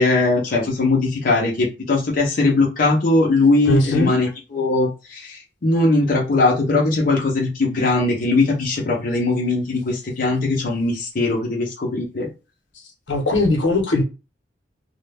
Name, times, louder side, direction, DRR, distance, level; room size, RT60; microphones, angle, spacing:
voice 1, 0.0-12.3, left 2 dB, 50° left, 0.6 m, -20 dB
voice 2, 3.7-4.1 13.1-14.0, left 2 dB, 80° left, 0.8 m, -19 dB
2.2 x 2.0 x 3.3 m
head